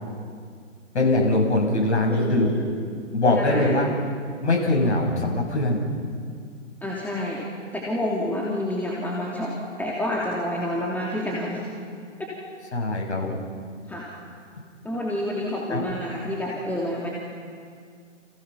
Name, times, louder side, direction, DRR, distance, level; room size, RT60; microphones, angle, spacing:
voice 1, 0.9-2.5 3.1-3.9 4.4-5.8 12.7-13.4 15.7-15.8, left 2 dB, 60° left, 0 dB, 7.9 m, -22 dB
voice 2, 2.1-2.6 3.4-3.7 6.8-7.4 7.7-9.5 9.8-11.6 13.9-14.1 14.8-17.1, left 1 dB, 5° left, -4 dB, 3.1 m, -28 dB
29.5 x 29.5 x 5.9 m, 2.2 s
figure-of-eight pair, 125°, 38 cm